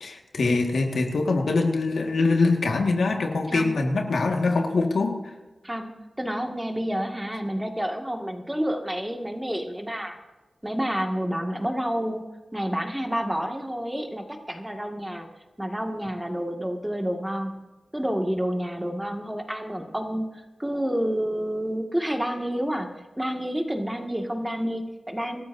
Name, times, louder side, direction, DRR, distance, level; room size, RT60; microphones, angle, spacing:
voice 1, 0.0-5.3, left 3 dB, 85° left, 2 dB, 1.7 m, -23 dB
voice 2, 5.6-10.2 10.6-15.3 15.6-17.7 17.9-22.9 23.2-25.4, equal, 10° right, 3 dB, 1.9 m, -29 dB
26.5 x 13.0 x 2.7 m, 1.1 s
cardioid pair, 55°, 0 cm